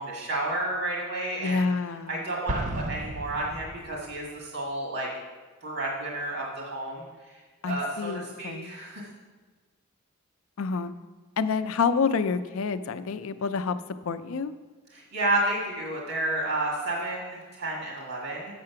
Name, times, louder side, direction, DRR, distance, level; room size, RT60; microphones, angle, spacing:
voice 1, 0.0-1.6 2.1-2.6 2.9-4.2 4.5-5.1 5.6-6.4 6.7-6.9 7.6-8.1 8.4-8.5 15.1-17.2 17.6-18.4, right 1 dB, 65° right, -3 dB, 1.6 m, -30 dB
voice 2, 1.4-2.2 7.6-8.7 10.6-10.9 11.4-13.8 14.1-14.5, left 5 dB, 70° left, 11 dB, 0.4 m, -28 dB
Explosion, 2.5-4.3, right 1 dB, 35° right, 0.5 m, -34 dB
7.6 x 6.6 x 5.7 m, 1.3 s
head